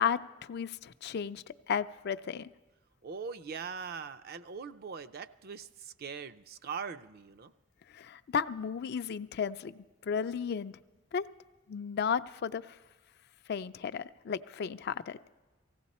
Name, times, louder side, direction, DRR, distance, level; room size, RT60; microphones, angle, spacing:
voice 1, 0.0-2.5 7.9-10.8 11.1-11.3 11.7-12.7 13.5-15.2, left 7 dB, 55° left, 12 dB, 0.4 m, -34 dB
voice 2, 3.0-7.5, right 6 dB, 50° right, 11 dB, 0.5 m, -41 dB
18.0 x 16.0 x 4.2 m, 1.2 s
head